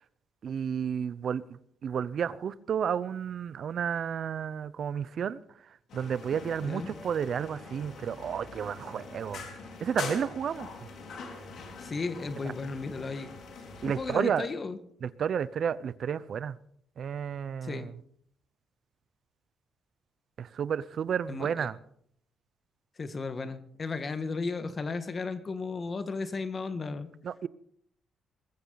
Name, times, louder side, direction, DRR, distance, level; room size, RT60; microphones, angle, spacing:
voice 1, 0.4-1.4 1.8-5.4 5.9-9.4 9.8-10.7 13.8-14.5 15.0-16.6 17.0-17.9 20.4-21.8 27.2-27.5, right 8 dB, 60° right, 0.8 m, -31 dB
sound 1, 5.9-14.1, left 4 dB, 70° left, 5.0 m, -43 dB
voice 2, 11.8-13.3 13.8-14.8 17.6-17.9 21.3-21.7 23.0-27.1, left 4 dB, 35° left, 1.7 m, -34 dB
20.5 x 15.0 x 4.1 m
cardioid pair, 90°, 0 cm